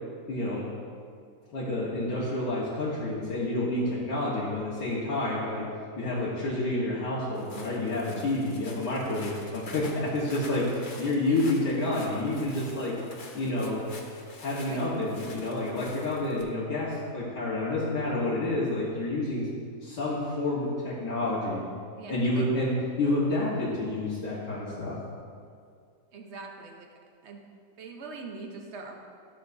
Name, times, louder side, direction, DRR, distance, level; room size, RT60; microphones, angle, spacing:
voice 1, 0.3-0.6 1.5-5.6 6.0-12.9 13.3-13.8 14.4-19.5 19.8-21.6 22.1-25.0, left 2 dB, 85° left, -9 dB, 2.1 m, -29 dB
Walk footsteps, 7.3-16.4, left 2 dB, 45° left, 0.7 m, -46 dB
voice 2, 21.9-22.5 26.1-26.9 27.2-27.4 27.8-29.0, right 4 dB, 50° right, 2 dB, 1.0 m, -42 dB
13.5 x 7.0 x 2.7 m, 2.2 s
omnidirectional pair, 1.8 m